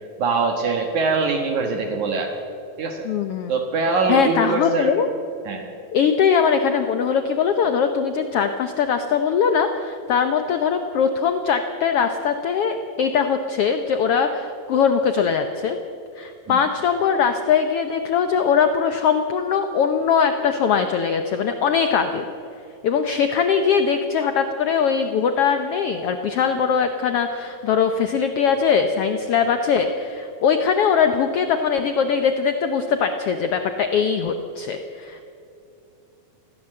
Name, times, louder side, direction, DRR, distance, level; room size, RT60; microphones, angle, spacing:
voice 1, 0.2-2.3 2.8-3.0 3.5-4.9 5.4-5.7 16.5-16.6, right 4 dB, 65° right, 3 dB, 2.8 m, -23 dB
voice 2, 3.0-3.5 4.1-5.1 5.9-15.8 16.2-22.2 22.8-35.2, left 6 dB, 75° left, 7 dB, 1.3 m, -21 dB
21.0 x 16.0 x 7.7 m, 2.6 s
omnidirectional pair, 3.9 m